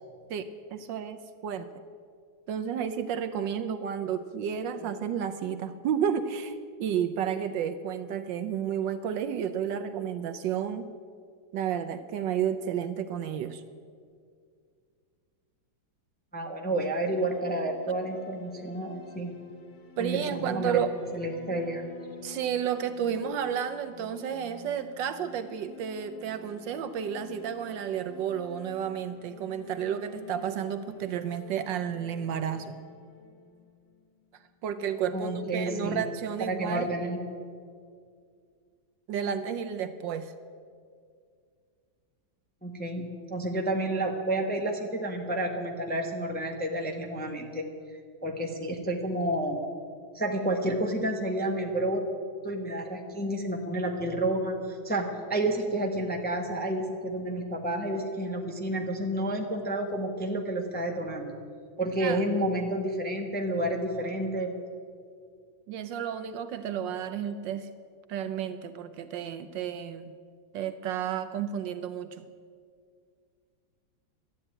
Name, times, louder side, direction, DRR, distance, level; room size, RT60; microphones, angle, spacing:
voice 1, 0.3-1.7 2.5-10.9 11.5-13.6 20.0-20.9 22.2-32.8 34.6-36.9 39.1-40.3 62.0-62.2 65.7-67.7 68.1-70.1 70.5-72.3, right 8 dB, 70° right, 10 dB, 1.3 m, -32 dB
voice 2, 16.3-19.3 20.0-20.8 21.1-21.9 35.1-36.0 36.4-37.2 42.6-47.6 48.2-49.6 50.1-52.0 52.4-61.3 61.8-64.5, right 1 dB, 5° left, 1 dB, 0.9 m, -30 dB
sound 1, 16.6-34.5, left 4 dB, 60° left, 1.8 m, -49 dB
12.5 x 9.7 x 8.8 m, 2.2 s
omnidirectional pair, 2.2 m